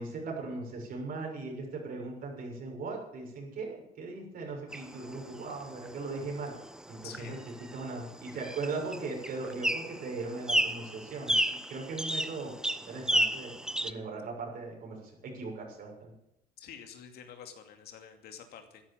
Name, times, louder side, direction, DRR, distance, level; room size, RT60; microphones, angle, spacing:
voice 1, 0.0-6.5 6.9-7.4 7.7-11.4 11.7-12.5 12.9-13.5 13.8-16.1, right 3 dB, 60° right, 1 dB, 6.8 m, -38 dB
sound 1, 4.7-13.9, right 1 dB, 5° right, 1.0 m, -33 dB
voice 2, 7.0-7.4 16.6-18.8, left 8 dB, 70° left, 5 dB, 2.6 m, -48 dB
13.0 x 11.0 x 9.0 m, 0.81 s
cardioid pair, 110°, 17 cm